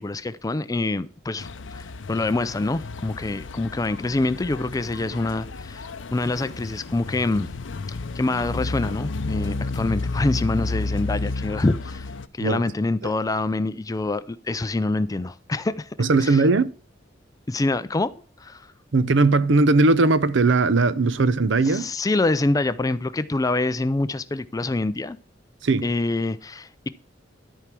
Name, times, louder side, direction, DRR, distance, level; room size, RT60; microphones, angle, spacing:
voice 1, 0.0-7.5 8.1-12.1 12.4-15.9 16.2-16.4 17.5-18.7 21.6-25.2 25.8-26.9, left 2 dB, 20° left, 0.4 m, -26 dB
sound 1, 1.4-12.3, left 3 dB, 70° left, 0.6 m, -32 dB
voice 2, 16.0-16.7 18.9-21.9 25.6-25.9, right 3 dB, 70° right, 0.7 m, -19 dB
13.5 x 4.7 x 6.0 m
head